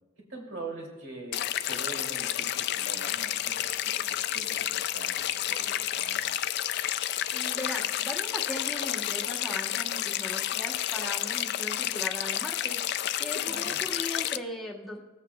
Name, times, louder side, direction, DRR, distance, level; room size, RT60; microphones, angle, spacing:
voice 1, 0.2-6.3 13.4-13.8, right 3 dB, 65° right, -1 dB, 2.7 m, -43 dB
sound 1, 1.3-14.4, left 12 dB, 55° left, 0.3 m, -30 dB
voice 2, 7.3-12.8 13.2-15.0, left 1 dB, ahead, -4 dB, 1.0 m, -38 dB
19.5 x 8.2 x 2.3 m, 1.2 s
head